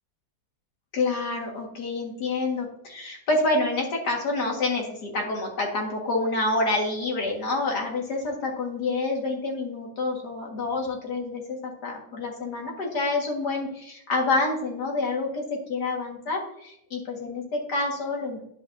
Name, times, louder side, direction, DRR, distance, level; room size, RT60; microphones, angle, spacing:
voice 1, 0.9-18.4, left 2 dB, 80° left, 0 dB, 2.4 m, -28 dB
11.5 x 5.2 x 2.7 m, 0.75 s
omnidirectional pair, 1.7 m